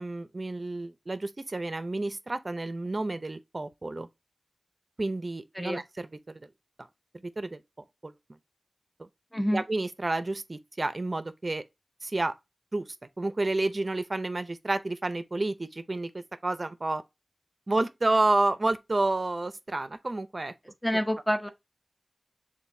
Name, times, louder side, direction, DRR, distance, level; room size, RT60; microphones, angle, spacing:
voice 1, 0.0-4.1 5.0-6.4 7.2-7.6 8.0-8.1 9.0-9.1 9.5-11.6 12.0-12.3 12.7-12.9 13.2-17.0 17.7-20.5, right 2 dB, 45° right, 0.6 m, -30 dB
voice 2, 9.3-9.6 20.8-21.5, equal, 10° left, 0.9 m, -27 dB
6.9 x 2.6 x 2.7 m
wide cardioid pair, 65°, 0 cm